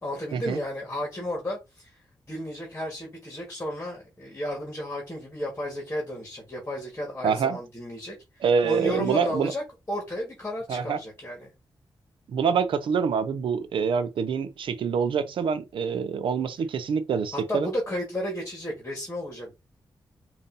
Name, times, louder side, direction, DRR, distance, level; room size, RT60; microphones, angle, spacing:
voice 1, 0.0-2.0 2.3-11.5 17.3-19.5, equal, 20° left, 1.5 m, -33 dB
voice 2, 7.2-7.6 8.4-9.5 10.7-11.0 12.3-17.7, right 6 dB, 85° right, 0.4 m, -26 dB
5.2 x 2.6 x 2.6 m
wide cardioid pair, 125°, 9 cm